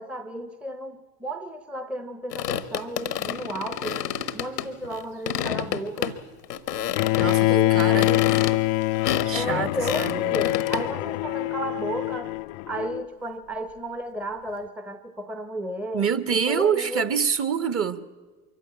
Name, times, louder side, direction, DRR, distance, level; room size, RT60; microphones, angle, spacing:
voice 1, 0.0-4.1 4.3-6.2 7.2-8.3 9.3-12.4 12.7-16.1 16.5-17.1, right 1 dB, 5° right, 10 dB, 0.8 m, -33 dB
sound 1, 2.3-5.0 5.3-6.2 6.4-7.4 7.8-10.9, left 9 dB, 85° left, 1.0 m, -29 dB
Bowed string instrument, 7.0-13.0, left 20 dB, 55° left, 0.6 m, -24 dB
voice 2, 7.2-8.2 9.2-10.3 15.9-18.1, right 7 dB, 30° right, 12 dB, 1.3 m, -26 dB
23.5 x 15.0 x 8.8 m, 1.4 s
figure-of-eight pair, 70°, 47 cm